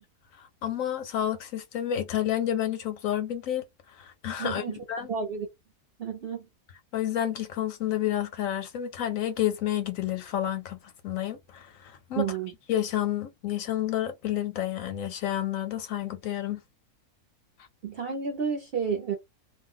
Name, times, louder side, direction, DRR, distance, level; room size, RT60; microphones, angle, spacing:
voice 1, 0.3-5.1 6.9-12.3 12.7-16.6, left 11 dB, 70° left, 0.9 m, -30 dB
voice 2, 4.4-4.8 5.1-5.5 6.0-6.5 12.2-12.5 17.8-19.2, right 6 dB, 60° right, 0.6 m, -30 dB
2.5 x 2.1 x 3.7 m
omnidirectional pair, 1.7 m